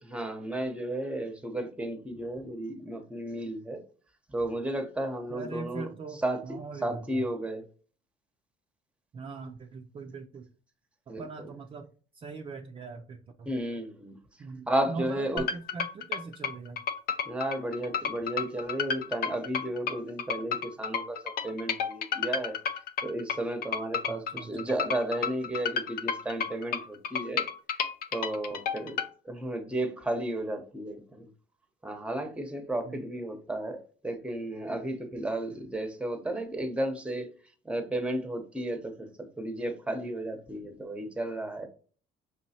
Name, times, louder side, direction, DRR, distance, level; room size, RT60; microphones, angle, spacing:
voice 1, 0.1-3.8 4.3-5.8 6.2-6.4 6.8-7.6 11.1-11.5 13.5-14.2 14.7-15.5 17.2-22.6 23.0-27.5 28.1-31.3 31.8-33.8 34.0-37.3 37.6-41.7, right 1 dB, 5° right, 0.9 m, -33 dB
voice 2, 5.3-7.3 9.1-10.5 11.1-11.9 12.1-13.5 14.4-16.9 24.1-24.7 32.8-33.0, right 4 dB, 30° right, 0.4 m, -41 dB
sound 1, 15.4-29.1, left 7 dB, 65° left, 0.6 m, -32 dB
5.4 x 3.0 x 2.8 m
cardioid pair, 110°, 17 cm